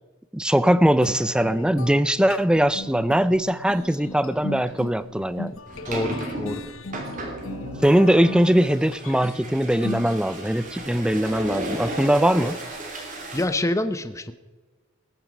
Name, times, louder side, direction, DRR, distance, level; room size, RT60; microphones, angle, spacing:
voice 1, 0.3-5.6 7.8-12.6, equal, 5° right, 15 dB, 0.4 m, -21 dB
sound 1, 1.0-10.7, left 3 dB, 70° left, 0.8 m, -38 dB
sound 2, 2.6-2.8 3.2-3.5 4.6-13.4, right 1 dB, 40° right, 2.8 m, -35 dB
voice 2, 5.9-6.6 13.3-14.3, left 1 dB, 15° left, 10 dB, 0.8 m, -26 dB
19.5 x 9.0 x 5.1 m, 1.3 s
head